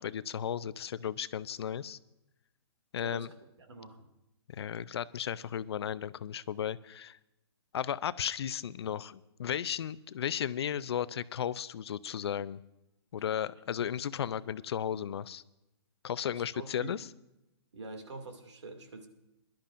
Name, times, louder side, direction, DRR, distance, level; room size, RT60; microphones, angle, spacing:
voice 1, 0.0-2.0 2.9-3.3 4.5-7.2 7.7-12.6 13.1-15.4 16.0-17.1, left 9 dB, 65° left, 17 dB, 0.5 m, -35 dB
voice 2, 3.6-4.1 13.8-14.0 16.3-17.0 17.7-19.1, right 2 dB, 80° right, 5 dB, 2.4 m, -45 dB
22.0 x 12.0 x 2.6 m, 0.91 s
hypercardioid pair, 135°, 14 cm